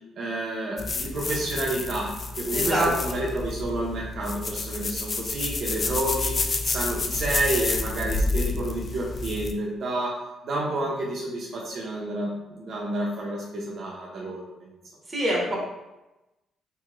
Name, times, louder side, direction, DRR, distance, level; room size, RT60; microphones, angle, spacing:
voice 1, 0.2-6.3 6.6-10.1 10.4-14.7, right 1 dB, 60° right, -4 dB, 0.6 m, -30 dB
sound 1, 0.8-9.5, left 3 dB, 40° left, 0.3 m, -29 dB
voice 2, 2.5-2.9 15.1-15.6, right 1 dB, 20° right, -4 dB, 1.1 m, -24 dB
2.9 x 2.7 x 2.4 m, 1.0 s
cardioid pair, 90°, 0 cm